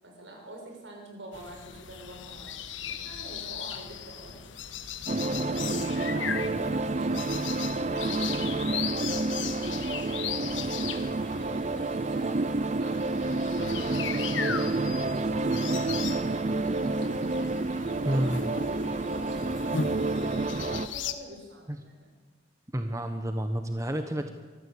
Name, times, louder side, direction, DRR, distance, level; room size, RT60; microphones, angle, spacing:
voice 1, 0.0-4.4 5.2-14.0 14.7-16.1 16.9-17.5 18.0-22.1, right 1 dB, 75° right, 1 dB, 6.6 m, -45 dB
sound 1, 1.3-21.1, left 7 dB, 90° left, 1.4 m, -38 dB
sound 2, 5.1-20.9, right 2 dB, 40° right, 0.5 m, -29 dB
voice 2, 18.0-18.5 21.7-21.8 22.7-24.3, equal, 15° right, 6 dB, 1.2 m, -29 dB
24.0 x 14.5 x 8.5 m, 1.4 s
head